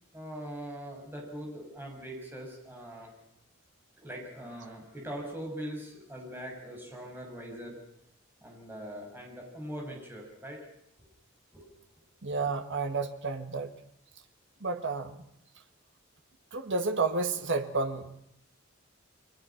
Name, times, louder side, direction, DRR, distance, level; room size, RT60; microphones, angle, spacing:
voice 1, 0.1-3.1 4.0-7.8 8.4-10.6 11.5-11.7, equal, 10° right, -1 dB, 6.6 m, -41 dB
voice 2, 12.2-13.7 14.6-15.2 16.5-18.1, right 3 dB, 60° right, 7 dB, 1.7 m, -31 dB
30.0 x 22.0 x 5.9 m, 0.74 s
head